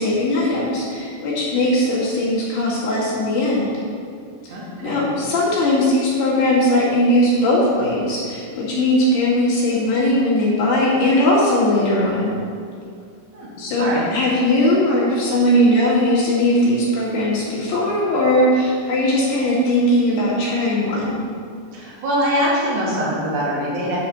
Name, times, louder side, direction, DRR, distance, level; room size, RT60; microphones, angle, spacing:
voice 1, 0.0-3.8 4.4-4.5 4.8-12.4 13.6-21.3, left 1 dB, 65° left, -7 dB, 4.0 m, -19 dB
voice 2, 4.5-5.1 13.3-13.5 13.8-14.1 21.7-24.0, equal, 70° right, -6 dB, 4.2 m, -23 dB
10.5 x 7.3 x 4.3 m, 2.3 s
omnidirectional pair, 5.2 m